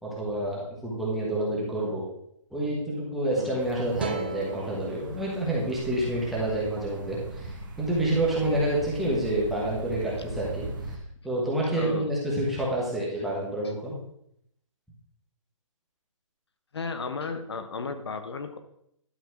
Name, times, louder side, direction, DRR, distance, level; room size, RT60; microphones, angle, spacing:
voice 1, 0.0-2.0 2.5-7.5 7.8-10.7 11.2-13.9, right 1 dB, ahead, -6 dB, 1.2 m, -28 dB
sound 1, 3.6-11.0, right 2 dB, 35° right, 1.3 m, -40 dB
sound 2, 4.0-7.2, right 3 dB, 20° right, 0.4 m, -38 dB
voice 2, 11.7-12.1 16.7-18.6, left 4 dB, 50° left, 9 dB, 0.9 m, -34 dB
11.5 x 4.3 x 6.0 m, 0.73 s
hypercardioid pair, 175°, 17 cm